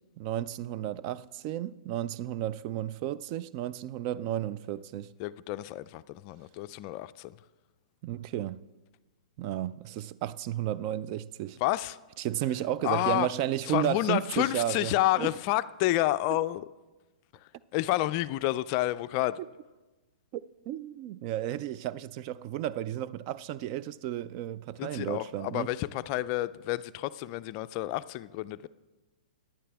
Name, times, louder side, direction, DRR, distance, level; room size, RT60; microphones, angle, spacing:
voice 1, 0.2-5.1 8.0-8.7 9.4-11.6 12.2-15.3 20.3-25.7, right 12 dB, 40° right, 0.3 m, -33 dB
voice 2, 5.2-7.4 11.6-12.0 12.8-13.3 13.7-16.6 17.3-19.4 24.8-28.7, left 16 dB, 40° left, 0.3 m, -29 dB
15.0 x 10.0 x 3.5 m
hypercardioid pair, 130°, 4 cm